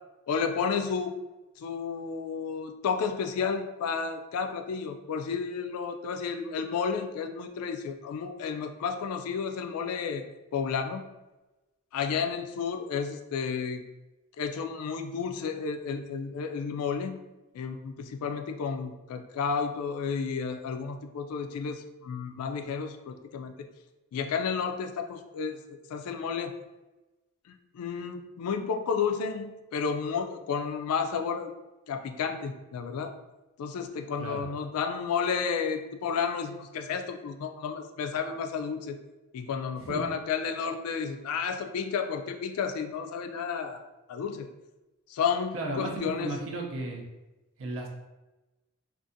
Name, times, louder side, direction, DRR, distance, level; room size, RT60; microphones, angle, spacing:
voice 1, 0.3-1.1 1.6-10.2 10.5-11.0 11.9-13.8 14.4-17.2 17.5-23.7 24.1-26.5 27.7-31.5 31.9-33.1 33.6-39.0 39.3-43.8 44.1-44.5 45.1-46.3, left 6 dB, 75° left, 6 dB, 0.3 m, -32 dB
voice 2, 45.5-47.0 47.6-47.9, right 2 dB, 65° right, 0 dB, 0.5 m, -34 dB
2.6 x 2.4 x 2.6 m, 1.1 s
head